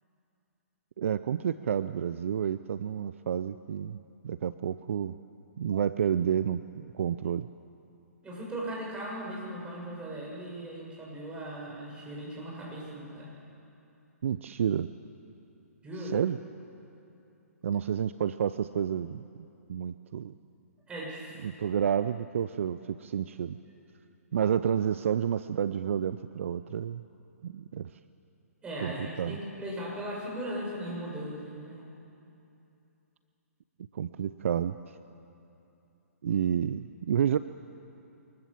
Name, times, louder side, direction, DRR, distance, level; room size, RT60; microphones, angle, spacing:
voice 1, 1.0-5.1 5.6-7.5 14.2-14.9 16.1-16.4 17.6-20.4 21.4-23.6 24.3-27.0 27.4-27.9 28.8-28.9 29.2-29.4 33.9-34.9 36.2-37.4, right 8 dB, 55° right, 13 dB, 0.6 m, -30 dB
voice 2, 8.2-13.3 15.8-16.1 20.9-21.4 28.6-31.8, right 1 dB, 10° right, -4 dB, 6.8 m, -38 dB
24.0 x 21.0 x 7.4 m, 2.8 s
figure-of-eight pair, 125°, 8 cm